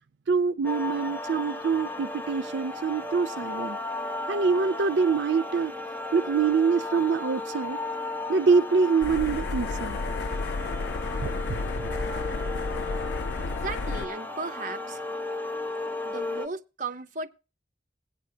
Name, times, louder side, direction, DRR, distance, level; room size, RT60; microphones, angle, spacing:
voice 1, 0.3-3.8 4.3-5.7 6.1-7.8 8.3-10.0 11.2-11.9, right 5 dB, 75° right, 0.5 m, -25 dB
sound 1, 0.6-16.5, left 2 dB, 10° left, 0.9 m, -35 dB
voice 2, 1.3-1.6 13.5-15.0 16.0-17.3, right 3 dB, 45° right, 0.8 m, -36 dB
sound 2, 9.0-14.1, left 3 dB, 65° left, 0.4 m, -32 dB
16.5 x 9.7 x 2.8 m
head